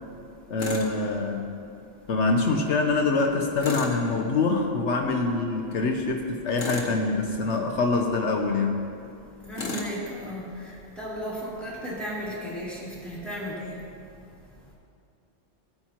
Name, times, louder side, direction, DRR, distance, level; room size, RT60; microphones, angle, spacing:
voice 1, 0.5-1.5 2.1-8.9, left 3 dB, 75° left, 2 dB, 1.1 m, -25 dB
Tools, 0.6-0.9 3.6-4.0 6.5-7.0 9.5-10.0, left 3 dB, 55° left, 1.5 m, -33 dB
voice 2, 9.5-10.4 11.0-13.7, equal, ahead, -8 dB, 3.0 m, -34 dB
17.5 x 9.1 x 2.9 m, 2.4 s
omnidirectional pair, 1.2 m